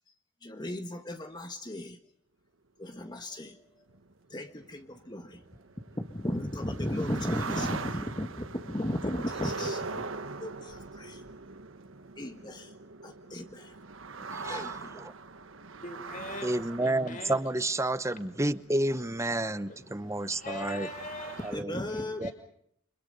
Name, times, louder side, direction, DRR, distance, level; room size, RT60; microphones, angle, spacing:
voice 1, 0.4-2.0 2.8-3.6 4.3-5.4 6.0-10.0 10.4-11.2 12.2-12.7 13.0-13.7 14.4-15.1 21.5-22.3, left 1 dB, 20° left, 6 dB, 1.6 m, -35 dB
sound 1, 3.9-21.6, right 4 dB, 80° right, 1.4 m, -42 dB
voice 2, 14.3-15.1 16.4-20.9 21.4-21.8 22.2-22.3, right 1 dB, 15° right, 13 dB, 1.0 m, -30 dB
voice 3, 15.8-16.5 16.8-17.4 20.3-21.6 21.9-22.3, left 2 dB, 40° left, 5 dB, 5.7 m, -41 dB
29.5 x 26.5 x 5.5 m, 0.71 s
head